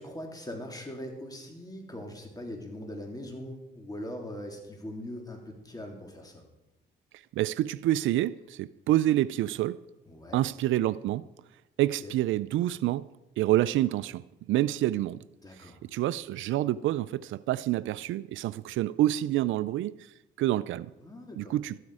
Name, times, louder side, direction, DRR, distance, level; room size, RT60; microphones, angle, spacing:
voice 1, 0.0-6.4 10.1-10.4 12.0-12.1 15.4-15.8 21.0-21.5, left 1 dB, 20° left, 3.3 m, -41 dB
voice 2, 7.3-9.8 10.3-11.2 11.8-13.1 13.4-15.2 15.6-20.0 20.4-20.9 21.4-21.8, right 14 dB, 80° right, 0.4 m, -27 dB
13.5 x 13.0 x 4.9 m
cardioid pair, 90°, 20 cm